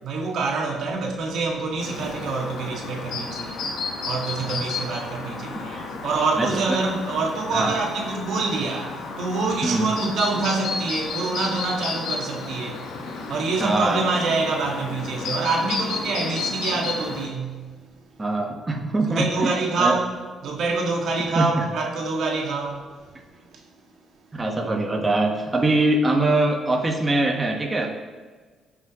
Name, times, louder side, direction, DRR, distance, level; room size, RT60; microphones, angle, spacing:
voice 1, 0.0-3.7 4.1-12.9 13.3-17.8 19.1-22.8 23.5-23.6, right 3 dB, 70° right, 1.8 m, -26 dB
Chirp tweet, 1.8-17.3, left 4 dB, 85° left, 1.5 m, -32 dB
voice 2, 5.5-5.9 6.4-6.6 7.5-7.8 9.6-9.9 13.6-14.0 18.2-19.9 21.3-21.7 24.3-28.0, right 2 dB, 25° right, 1.3 m, -23 dB
16.5 x 6.1 x 3.1 m
cardioid pair, 90°, 0 cm